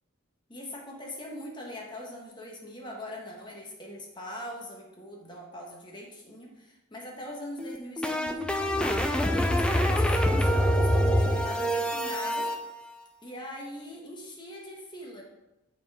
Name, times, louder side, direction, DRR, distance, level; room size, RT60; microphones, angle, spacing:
voice 1, 0.5-9.0 9.3-12.5 13.2-15.2, left 1 dB, 20° left, -1 dB, 1.1 m, -41 dB
sound 1, 7.6-12.6, equal, 5° left, 0.3 m, -25 dB
9.1 x 4.4 x 3.5 m, 0.97 s
head